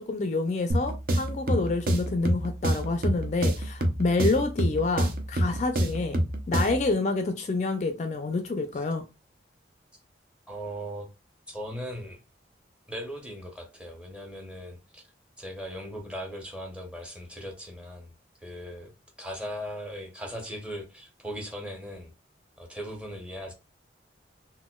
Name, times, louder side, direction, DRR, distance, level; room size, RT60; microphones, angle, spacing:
voice 1, 0.0-6.2 6.5-9.0, left 3 dB, 40° left, 0.3 m, -28 dB
sound 1, 0.7-6.9, right 1 dB, 50° right, 0.6 m, -28 dB
voice 2, 10.5-11.1 11.5-12.2 12.9-15.1 15.4-18.1 18.4-18.9 19.2-22.1 22.6-23.5, equal, 5° right, 0.7 m, -38 dB
4.1 x 2.2 x 2.2 m
head